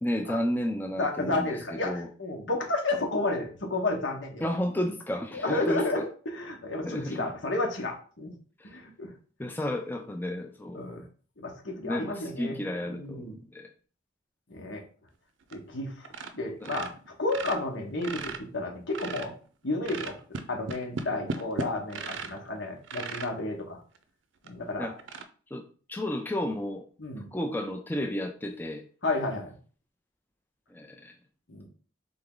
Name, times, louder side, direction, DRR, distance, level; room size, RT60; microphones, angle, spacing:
voice 1, 0.0-1.5 1.8-2.1 4.4-6.0 6.8-7.3 8.6-8.7 9.4-10.8 11.8-13.7 16.6-16.7 24.8-25.0 25.5-25.6 25.9-26.8 27.3-28.8 30.7-31.1, left 1 dB, 10° left, 4 dB, 0.4 m, -32 dB
voice 2, 1.0-4.5 5.3-8.3 8.7-9.1 10.7-11.0 11.4-12.6 12.9-13.4 14.5-14.8 15.5-16.0 16.3-16.9 17.2-19.3 19.6-20.2 20.5-23.8 24.4-24.9 27.0-27.3 29.0-29.5 31.5-31.7, left 2 dB, 85° left, 1 dB, 1.3 m, -31 dB
sound 1, 15.4-15.8 16.0-16.4 16.6-19.4 19.8-22.5 22.8-23.3 23.9-24.0 24.5-24.6 25.0-25.2, right 4 dB, 85° right, 0.5 m, -37 dB
3.8 x 3.5 x 3.8 m, 0.41 s
head